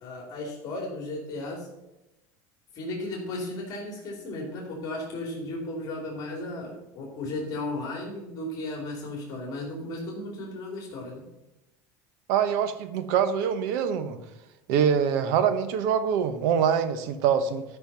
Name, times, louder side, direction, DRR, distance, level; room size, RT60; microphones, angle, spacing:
voice 1, 0.0-1.7 2.7-11.2, left 2 dB, 40° left, -1 dB, 2.8 m, -35 dB
voice 2, 12.3-14.2 14.7-17.6, right 8 dB, 75° right, 11 dB, 1.1 m, -24 dB
12.0 x 5.7 x 5.5 m, 0.94 s
cardioid pair, 155°, 10 cm